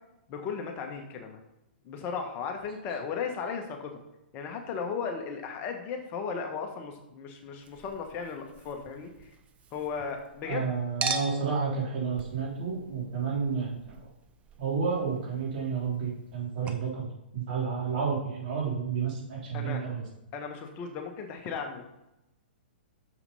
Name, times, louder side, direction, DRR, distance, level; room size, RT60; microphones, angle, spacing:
voice 1, 0.3-1.4 1.8-3.9 4.3-9.1 9.7-10.7 16.6-16.7 19.5-19.8 20.3-21.8, left 6 dB, 35° left, 4 dB, 1.2 m, -36 dB
Chink clink, 7.6-10.6 11.0-16.4 16.7-16.8, right 4 dB, 20° right, 0.8 m, -41 dB
voice 2, 10.4-13.9 14.6-17.1 17.3-20.0, right 5 dB, 50° right, -4 dB, 3.4 m, -31 dB
6.7 x 5.7 x 5.5 m, 0.92 s
hypercardioid pair, 120°, 6 cm